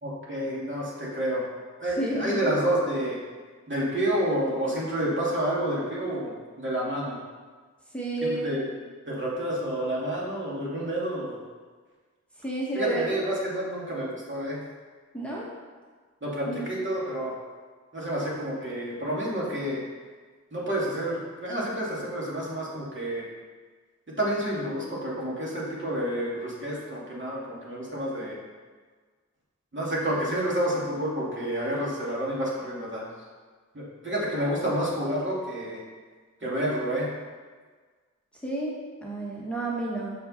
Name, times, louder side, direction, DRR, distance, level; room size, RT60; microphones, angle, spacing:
voice 1, 0.0-1.4 1.8-3.2 3.7-7.2 8.2-8.7 9.1-11.4 12.7-14.6 16.2-17.4 17.9-19.8 20.5-23.2 24.1-28.4 29.7-33.0 33.7-35.8 36.4-37.1, right 1 dB, 40° right, -6 dB, 2.5 m, -29 dB
voice 2, 2.0-2.5 7.9-8.5 12.4-13.0 15.1-15.5 16.5-16.6 38.4-40.1, right 2 dB, 5° left, -5 dB, 1.4 m, -31 dB
6.4 x 5.9 x 5.6 m, 1.5 s
wide cardioid pair, 70°, 30 cm